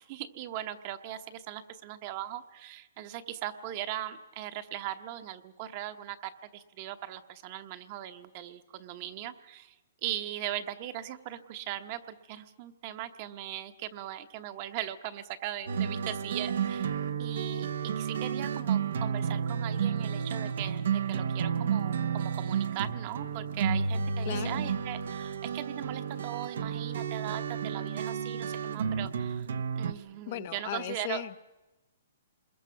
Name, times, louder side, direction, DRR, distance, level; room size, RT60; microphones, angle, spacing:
voice 1, 0.0-9.7 10.0-16.9 17.2-29.5 29.7-31.2, right 12 dB, 35° right, 9 dB, 1.1 m, -39 dB
sound 1, 15.7-29.9, right 7 dB, 70° right, 1.0 m, -31 dB
voice 2, 24.3-24.7 30.3-31.5, left 14 dB, 45° left, 12 dB, 0.8 m, -37 dB
27.0 x 21.5 x 5.9 m, 1.0 s
hypercardioid pair, 155°, 0 cm